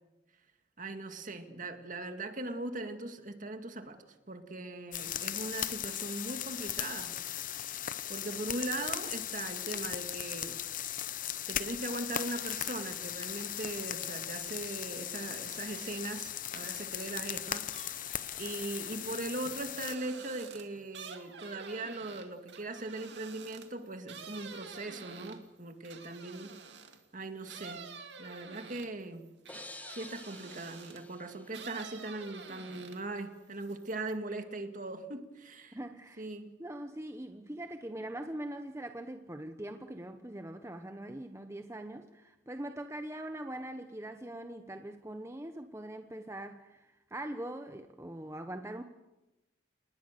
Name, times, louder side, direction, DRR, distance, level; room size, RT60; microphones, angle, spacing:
voice 1, 0.8-7.2 7.5-7.6 8.1-10.6 11.5-17.9 18.4-26.6 27.1-27.9 28.2-29.3 29.9-35.8 36.2-36.6, right 2 dB, 45° right, 7 dB, 2.2 m, -40 dB
sound 1, 4.9-20.0, left 11 dB, 45° left, 0.9 m, -38 dB
sound 2, 16.4-17.0 17.3-27.0 27.5-31.1 31.5-33.2 33.5-34.1, right 5 dB, 65° right, 2.4 m, -49 dB
sound 3, 29.5-32.3, left 2 dB, 10° left, 1.5 m, -50 dB
voice 2, 35.7-36.3 36.6-48.8, right 1 dB, 15° right, 6 dB, 1.0 m, -42 dB
29.0 x 19.5 x 6.8 m, 1.0 s
head